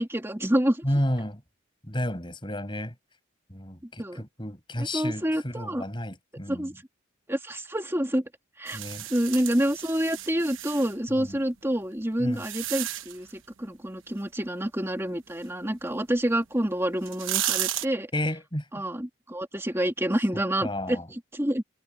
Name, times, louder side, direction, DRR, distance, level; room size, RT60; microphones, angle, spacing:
voice 1, 0.0-0.8 4.0-4.2 4.8-5.8 6.5-6.7 7.3-8.2 8.6-8.8 9.1-13.3 13.6-18.1 18.7-21.6, equal, 10° right, 2.6 m, -28 dB
voice 2, 0.8-1.4 1.8-2.9 3.5-6.7 8.7-9.1 11.1-11.4 12.2-12.4 18.1-18.7 20.6-21.1, left 1 dB, 25° left, 5.9 m, -31 dB
sound 1, 8.7-10.9 11.7-13.3 16.3-16.4 16.9-17.9, right 13 dB, 75° right, 1.1 m, -33 dB
head